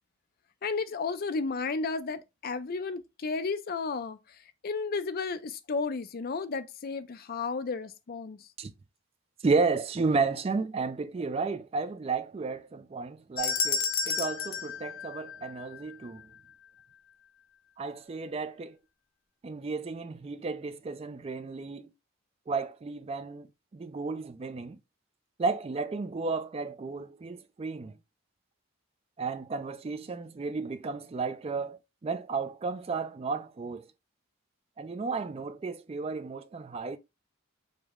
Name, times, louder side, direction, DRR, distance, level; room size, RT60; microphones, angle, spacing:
voice 1, 0.6-4.2 4.6-8.4, left 4 dB, 45° left, 0.4 m, -33 dB
voice 2, 9.4-16.3 17.8-18.8 19.4-21.9 22.5-23.5 23.7-24.8 25.4-28.0 29.2-33.9 34.8-37.0, right 4 dB, 30° right, 0.3 m, -33 dB
sound 1, 13.4-15.8, left 5 dB, 90° left, 0.7 m, -31 dB
5.0 x 2.1 x 3.5 m
head